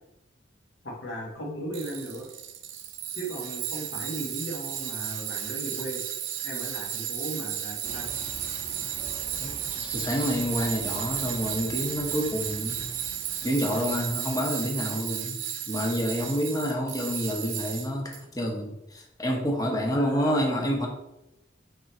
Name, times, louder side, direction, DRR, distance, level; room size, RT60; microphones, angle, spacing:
voice 1, 0.8-2.3 3.1-6.0 6.4-8.1 19.9-20.4, right 1 dB, 75° left, -2 dB, 1.4 m, -36 dB
Tools, 1.7-18.2, right 10 dB, 90° right, 0.5 m, -34 dB
sound 1, 7.8-14.2, right 1 dB, 5° right, 0.8 m, -45 dB
voice 2, 9.9-12.8 13.4-15.4 15.7-20.9, equal, 20° left, 1 dB, 0.8 m, -28 dB
3.8 x 3.4 x 4.2 m, 0.88 s
head